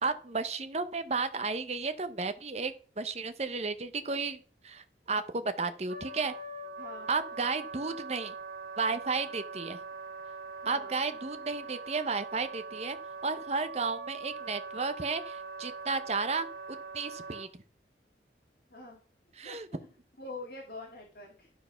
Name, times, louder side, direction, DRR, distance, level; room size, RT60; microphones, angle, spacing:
voice 1, 0.0-6.3 7.1-8.3 8.8-9.8 10.7-13.0 13.2-17.5 19.4-19.7, right 4 dB, 35° right, 11 dB, 0.8 m, -33 dB
Wind instrument woodwind instrument, 5.9-17.5, right 4 dB, 55° right, 1.2 m, -42 dB
voice 2, 6.8-7.1 10.6-11.0 18.7-19.0 19.4-19.9 20.2-21.5, left 2 dB, 55° left, -1 dB, 2.0 m, -45 dB
12.0 x 4.7 x 5.7 m, 0.40 s
head